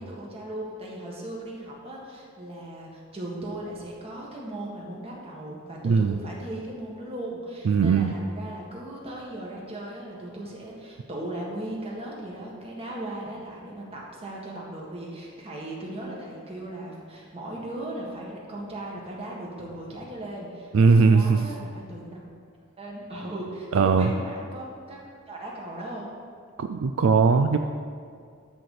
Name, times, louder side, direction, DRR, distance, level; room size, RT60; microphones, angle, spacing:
voice 1, 0.0-22.2 22.8-25.0 25.3-26.1, right 1 dB, 30° right, -3 dB, 1.8 m, -37 dB
voice 2, 7.7-8.1 20.7-21.4 23.7-24.1 26.6-27.6, right 5 dB, 70° right, 7 dB, 0.4 m, -19 dB
12.0 x 4.1 x 6.6 m, 2.1 s
head